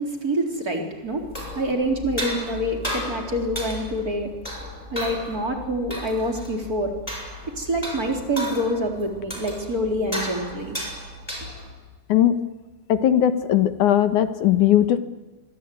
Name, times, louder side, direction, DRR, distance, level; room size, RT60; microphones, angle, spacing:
voice 1, 0.0-6.9 7.6-10.8, equal, 25° right, 2 dB, 4.3 m, -26 dB
sound 1, 1.1-11.8, equal, 10° left, 6.5 m, -34 dB
voice 2, 12.9-15.0, left 11 dB, 75° left, 10 dB, 2.7 m, -18 dB
26.5 x 23.0 x 9.5 m, 1.2 s
omnidirectional pair, 3.6 m